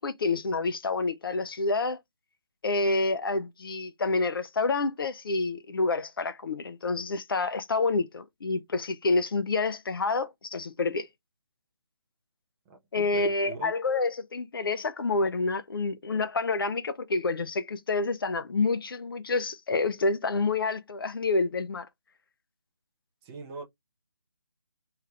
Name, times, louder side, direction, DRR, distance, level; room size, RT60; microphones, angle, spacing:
voice 1, 0.0-2.0 2.6-11.1 12.9-21.9, left 3 dB, 60° left, 0.6 m, -28 dB
voice 2, 12.7-13.7 23.2-23.6, right 4 dB, 10° right, 0.4 m, -42 dB
3.2 x 2.4 x 3.1 m
figure-of-eight pair, 155°, 13 cm